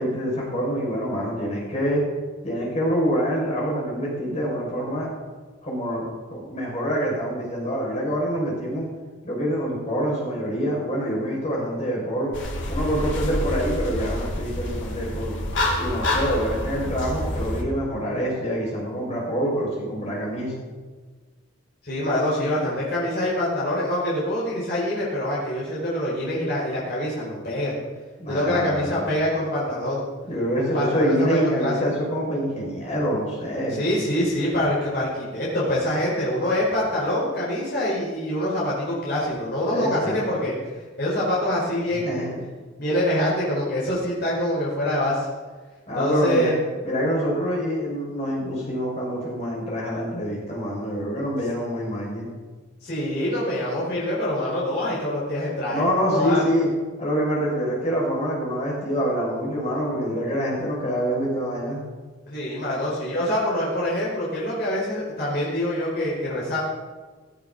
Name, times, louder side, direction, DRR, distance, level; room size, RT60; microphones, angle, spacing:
voice 1, 0.0-2.0 2.4-5.1 5.6-8.8 9.2-12.3 12.7-15.3 15.8-20.5 28.2-29.1 30.2-33.8 39.7-40.4 41.9-42.4 45.9-46.5 46.8-52.3 55.7-56.7 57.0-61.8, equal, 35° left, -4 dB, 6.1 m, -26 dB
sound 1, 12.3-17.6, left 1 dB, 70° left, 3.2 m, -27 dB
voice 2, 21.8-27.8 28.3-30.0 30.6-31.7 33.7-40.5 41.0-42.3 42.8-45.3 45.9-46.5 52.8-55.8 56.1-56.4 62.3-66.6, left 1 dB, 55° left, -7 dB, 4.8 m, -25 dB
17.5 x 16.0 x 4.1 m, 1.4 s
head